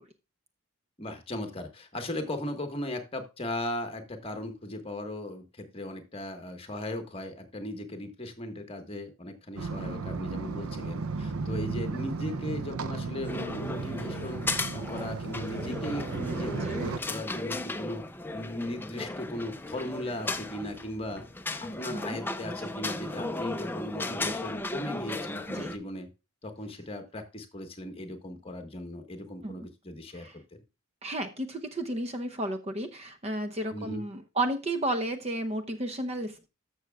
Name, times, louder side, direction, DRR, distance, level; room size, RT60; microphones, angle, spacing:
voice 1, 1.0-14.4 14.7-18.1 18.3-21.3 21.6-26.1 26.4-30.3 33.7-34.0, left 1 dB, 25° left, 6 dB, 1.4 m, -37 dB
sound 1, 9.6-17.0, right 4 dB, 85° right, 0.6 m, -35 dB
sound 2, 13.2-25.8, left 2 dB, 10° left, 0.5 m, -36 dB
voice 2, 31.0-36.5, right 1 dB, 30° right, 8 dB, 0.7 m, -32 dB
14.0 x 6.5 x 2.3 m, 0.27 s
head